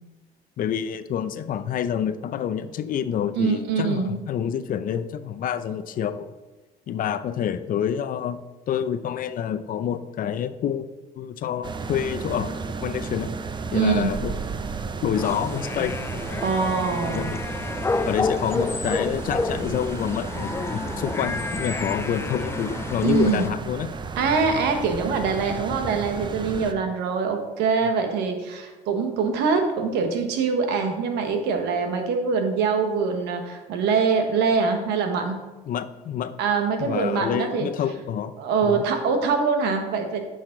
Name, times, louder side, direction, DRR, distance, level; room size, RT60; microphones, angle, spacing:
voice 1, 0.6-6.3 6.9-8.4 8.7-13.3 13.7-14.3 15.0-16.0 17.1-17.4 18.0-23.9 27.8-27.9 35.7-36.4 36.8-38.3 38.6-38.8, left 9 dB, 55° left, 12 dB, 0.6 m, -28 dB
voice 2, 3.3-4.2 13.7-14.1 16.4-17.3 23.0-23.5 24.2-35.4 36.4-37.7 38.4-40.2, right 5 dB, 90° right, 5 dB, 1.4 m, -24 dB
sound 1, 11.6-26.7, right 4 dB, 25° right, 0.7 m, -33 dB
sound 2, 15.2-23.5, left 3 dB, 15° left, 0.3 m, -30 dB
10.5 x 6.4 x 3.9 m, 1.2 s
cardioid pair, 110°, 17 cm